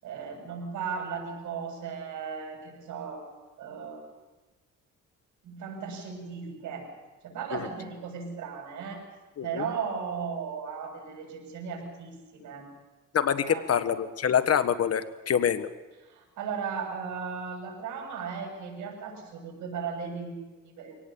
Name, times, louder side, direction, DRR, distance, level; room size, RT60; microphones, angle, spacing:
voice 1, 0.0-3.2 3.6-4.0 5.4-6.9 7.2-9.0 9.4-12.7 13.4-13.8 16.0-20.4 20.6-21.0, right 6 dB, 80° right, 2 dB, 7.4 m, -36 dB
voice 2, 13.1-15.7, left 8 dB, 55° left, 12 dB, 1.4 m, -26 dB
24.5 x 18.0 x 7.0 m, 1.2 s
cardioid pair, 90°, 30 cm